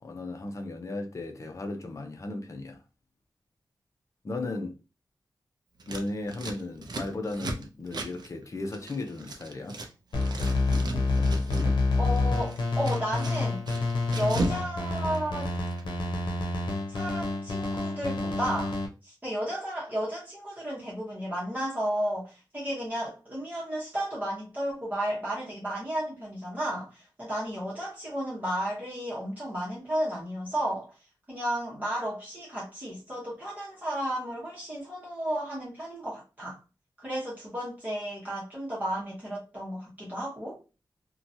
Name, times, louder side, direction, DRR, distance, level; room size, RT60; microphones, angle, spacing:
voice 1, 0.0-2.8 4.2-4.7 5.9-9.8, left 2 dB, 45° left, 0.6 m, -36 dB
Scissors, 5.8-9.9 10.1-11.8 12.1-14.6 14.9-15.8, right 2 dB, 65° right, 0.5 m, -36 dB
sound 1, 10.1-18.9, left 3 dB, 85° left, 0.7 m, -28 dB
voice 2, 12.0-13.6 14.1-15.5 16.9-18.8 19.0-30.9 31.3-36.6 37.0-40.6, equal, 20° right, 0.9 m, -33 dB
2.8 x 2.2 x 2.6 m
wide cardioid pair, 105°, 8 cm